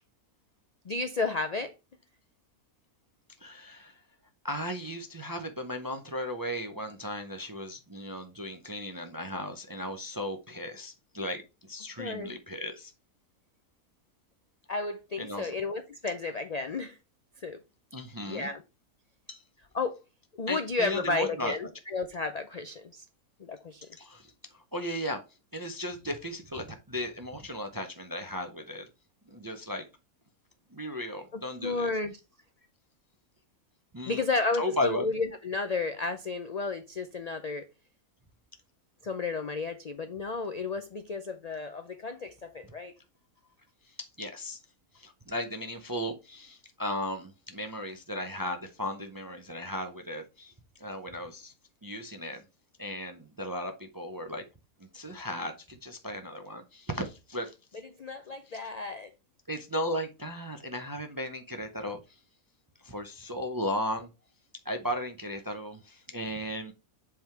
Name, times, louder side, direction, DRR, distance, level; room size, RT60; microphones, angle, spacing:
voice 1, 0.8-1.7 12.0-12.3 14.7-17.0 17.4-17.6 18.2-18.6 19.7-20.0 20.4-23.0 23.4-23.9 31.3-32.2 34.1-37.7 39.0-42.9 58.0-59.1, left 3 dB, 65° left, 0.3 m, -32 dB
voice 2, 3.4-4.0 4.4-12.9 15.2-15.5 17.9-18.5 19.3-19.4 20.5-21.5 23.8-25.2 25.5-28.9 29.3-29.8 30.7-31.9 33.9-34.2 34.6-35.1 43.9-44.6 44.9-50.5 50.8-51.5 51.8-52.4 52.8-54.4 54.8-57.5 58.5-58.7 59.5-62.2 62.8-64.1 64.6-66.7, left 1 dB, 25° right, 0.4 m, -36 dB
7.7 x 3.6 x 4.5 m
omnidirectional pair, 1.5 m